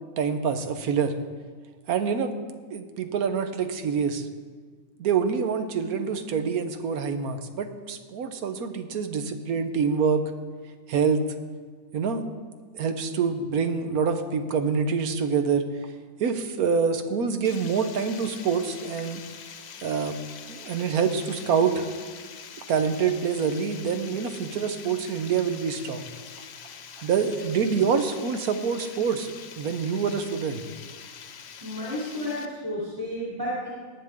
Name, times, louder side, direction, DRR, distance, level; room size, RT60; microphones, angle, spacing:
voice 1, 0.2-1.1 1.9-2.3 2.7-4.3 5.0-10.2 10.9-11.2 11.9-12.2 12.7-15.6 16.2-19.2 19.8-20.2 20.5-21.9 22.7-26.1 27.0-30.6, right 6 dB, 90° right, 8 dB, 1.4 m, -26 dB
Water, 17.4-32.5, left 7 dB, 55° left, 0.8 m, -44 dB
voice 2, 31.6-33.7, left 1 dB, 15° right, -8 dB, 3.1 m, -32 dB
18.0 x 10.0 x 3.6 m, 1.5 s
omnidirectional pair, 1.5 m